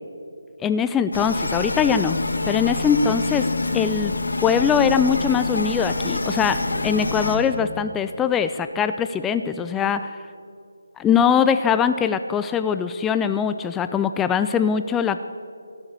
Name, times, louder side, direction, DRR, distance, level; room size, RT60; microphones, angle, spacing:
voice 1, 0.6-2.2 2.4-3.5 3.7-4.1 4.4-10.1 11.0-15.2, left 7 dB, 10° left, 10 dB, 0.3 m, -22 dB
sound 1, 1.1-7.4, left 2 dB, 70° left, 2.2 m, -26 dB
17.5 x 7.1 x 8.5 m, 2.4 s
figure-of-eight pair, 160°, 0 cm